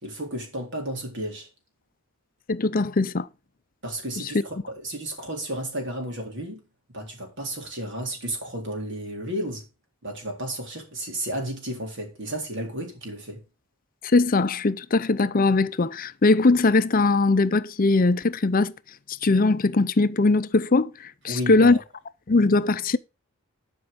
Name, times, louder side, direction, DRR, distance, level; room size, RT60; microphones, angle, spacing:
voice 1, 0.0-1.5 3.8-6.6 6.9-9.7 10.0-13.4 21.3-21.8, right 1 dB, 55° right, 3.7 m, -33 dB
voice 2, 2.5-3.3 14.0-18.7 19.2-21.8 22.3-23.0, left 3 dB, 40° left, 0.6 m, -20 dB
12.5 x 5.3 x 5.2 m
head